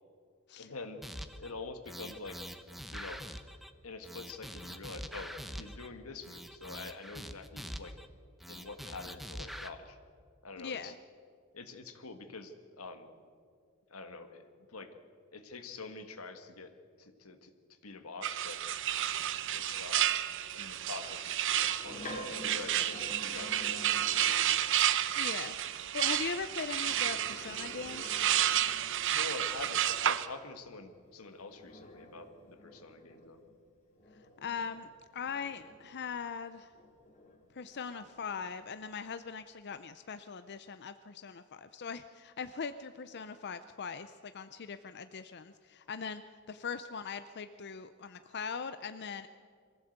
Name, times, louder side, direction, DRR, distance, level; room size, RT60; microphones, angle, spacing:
voice 1, 0.6-1.0 1.4-2.4 2.9-3.2 3.8-8.0 8.5-10.0 10.4-10.9 11.5-13.1 13.9-14.9 15.3-16.7 17.0-17.5 17.8-18.6 19.5-20.2 20.5-24.7 29.1-33.4 34.7-34.8, left 3 dB, 90° left, 8 dB, 1.7 m, -46 dB
sound 1, 1.0-1.5 1.8-3.7 4.0-5.9 6.2-8.1 8.4-9.7, equal, ahead, 0.9 m, -44 dB
voice 2, 10.6-10.9 25.1-25.6 25.9-28.2 34.4-36.7 37.5-46.2 46.5-49.3, left 6 dB, 55° left, 11 dB, 0.6 m, -40 dB
sound 2, 18.2-30.3, right 11 dB, 60° right, 0.8 m, -31 dB
sound 3, 21.4-24.8 26.7-29.0 31.0-36.2 36.7-38.5, left 1 dB, 35° left, 2.5 m, -49 dB
23.0 x 15.5 x 8.0 m, 2.1 s
head